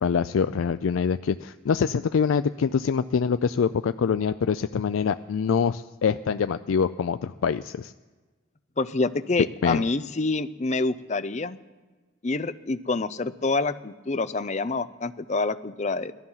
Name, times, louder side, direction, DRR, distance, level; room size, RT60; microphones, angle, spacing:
voice 1, 0.0-7.9 9.6-9.8, left 6 dB, 85° left, 11 dB, 0.4 m, -25 dB
voice 2, 8.8-11.6 12.2-16.1, left 3 dB, 35° left, 13 dB, 0.5 m, -27 dB
18.0 x 13.0 x 5.7 m, 1.3 s
head